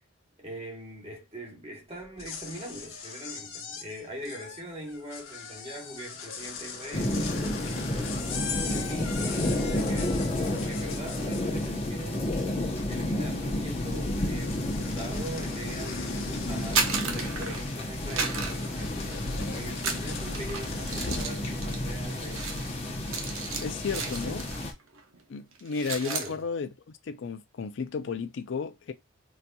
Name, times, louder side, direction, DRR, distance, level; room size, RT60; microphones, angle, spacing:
voice 1, 0.4-8.2 8.7-12.4 12.8-22.5 23.8-24.5 26.0-26.4, right 1 dB, 30° right, 1.2 m, -42 dB
sound 1, 2.0-12.0 12.3-13.1 13.3-21.4, left 5 dB, 80° left, 1.0 m, -40 dB
sound 2, 6.9-24.7, left 1 dB, 30° left, 0.8 m, -31 dB
Dumping Out Pencils, 16.5-17.8 18.1-19.3 19.7-24.7 24.9-25.2 25.5-26.3, right 5 dB, 75° right, 0.8 m, -34 dB
voice 2, 23.6-24.4 25.3-26.7 27.0-28.9, left 5 dB, 60° left, 0.4 m, -33 dB
4.0 x 2.8 x 2.2 m
head